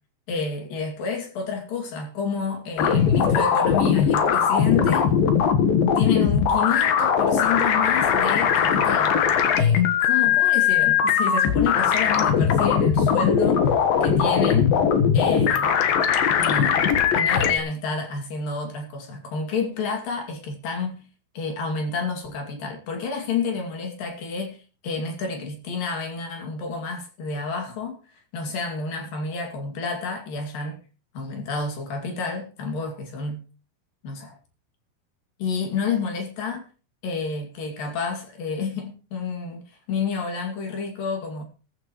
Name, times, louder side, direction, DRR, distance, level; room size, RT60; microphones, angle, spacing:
voice 1, 0.3-5.2 6.0-9.2 9.6-14.8 15.1-15.8 16.4-21.0 21.3-28.0 28.3-30.8 31.1-33.4 34.0-34.4 35.4-36.7 37.0-41.4, left 5 dB, 50° left, 3.8 m, -29 dB
sound 1, 2.8-17.6, left 7 dB, 65° left, 2.4 m, -20 dB
15.0 x 15.0 x 3.2 m
omnidirectional pair, 5.9 m